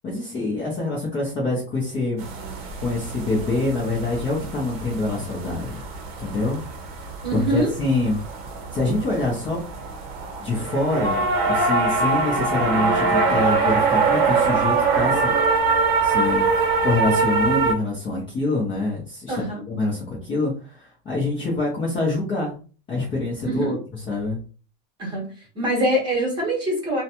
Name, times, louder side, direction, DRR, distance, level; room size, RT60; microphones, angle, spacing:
voice 1, 0.0-2.2 2.8-5.8 6.2-6.6 7.3-8.2 8.7-9.6 10.4-15.3 16.0-22.6 22.9-23.8 24.1-24.4, left 2 dB, 15° left, -5 dB, 0.5 m, -25 dB
sound 1, 2.2-17.7, right 4 dB, 85° right, 0.8 m, -23 dB
voice 2, 7.2-7.7 19.3-19.6 23.4-23.7 25.0-27.0, right 1 dB, 15° right, -2 dB, 1.0 m, -24 dB
2.5 x 2.1 x 2.7 m, 0.37 s
supercardioid pair, 170°, 30 cm